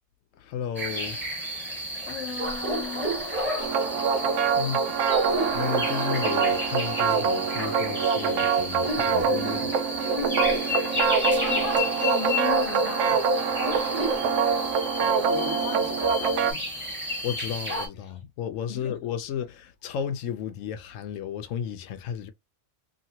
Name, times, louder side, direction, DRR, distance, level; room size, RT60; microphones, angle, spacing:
voice 1, 0.3-1.2 3.6-4.0 4.5-5.0 5.5-9.9 17.2-22.3, left 8 dB, 90° left, 1.0 m, -33 dB
sound 1, 0.7-17.9, equal, 10° right, 1.2 m, -31 dB
voice 2, 2.1-3.1 6.7-6.9 11.5-11.7 12.0-13.2 15.0-16.6 18.0-18.2 18.7-19.0, left 6 dB, 60° left, 0.9 m, -36 dB
sound 2, 3.6-16.5, right 6 dB, 80° right, 0.9 m, -25 dB
2.9 x 2.8 x 2.8 m
omnidirectional pair, 1.3 m